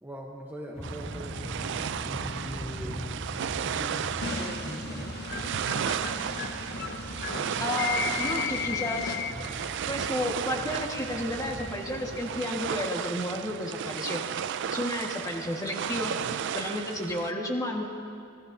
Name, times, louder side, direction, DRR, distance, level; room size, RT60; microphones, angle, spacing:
voice 1, 0.0-1.7 2.0-3.1 3.6-5.2, equal, 10° right, -1 dB, 0.9 m, -42 dB
sound 1, 0.7-12.7, equal, 35° left, 2.9 m, -41 dB
sound 2, 0.8-17.3, right 8 dB, 60° right, 0.4 m, -34 dB
sound 3, 4.2-9.6, left 6 dB, 55° left, 0.8 m, -34 dB
voice 2, 7.6-9.2 9.9-14.2 14.7-16.1 16.5-17.8, left 1 dB, 20° left, 0 dB, 1.5 m, -32 dB
25.5 x 15.0 x 2.7 m, 2.4 s
head